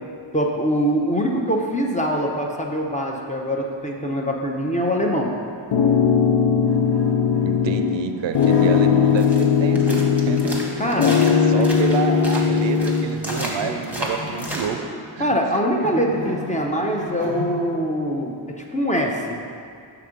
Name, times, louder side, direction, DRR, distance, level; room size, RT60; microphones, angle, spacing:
voice 1, 0.3-5.3 7.6-7.8 10.8-11.2 11.6-11.7 15.2-19.5, equal, 15° left, 0 dB, 0.5 m, -23 dB
sound 1, 5.7-8.1 8.3-10.7 11.0-13.1, left 7 dB, 90° left, 0.6 m, -18 dB
sound 2, 6.6-9.5 9.8-12.5 13.3-14.9 15.3-17.8, left 2 dB, 60° left, 1.3 m, -35 dB
voice 2, 7.4-10.8 11.5-15.4, right 7 dB, 70° right, 7 dB, 0.5 m, -29 dB
sound 3, 8.3-14.7, equal, 5° right, 0.9 m, -33 dB
5.8 x 3.6 x 5.0 m, 2.3 s
wide cardioid pair, 85°, 46 cm